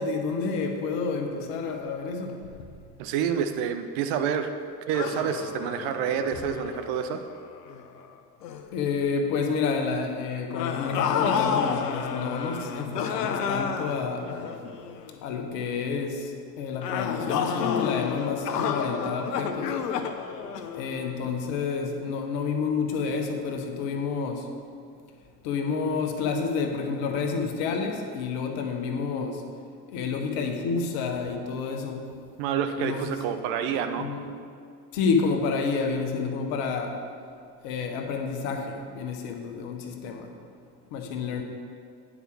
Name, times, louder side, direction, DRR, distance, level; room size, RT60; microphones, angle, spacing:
voice 1, 0.0-2.7 8.7-14.3 15.2-19.8 20.8-24.5 25.4-29.4 29.9-32.0 32.8-33.4 34.0-34.3 34.9-37.0 37.6-40.3 40.9-41.4, left 5 dB, 60° left, 4 dB, 1.1 m, -29 dB
voice 2, 3.0-4.5 4.9-7.2 32.4-34.1, right 8 dB, 55° right, 7 dB, 0.7 m, -28 dB
sound 1, 4.9-8.0 8.4-8.7 10.5-15.1 16.8-21.4, left 7 dB, 75° left, 0.7 m, -30 dB
9.6 x 4.9 x 6.1 m, 2.2 s
figure-of-eight pair, 55°, 49 cm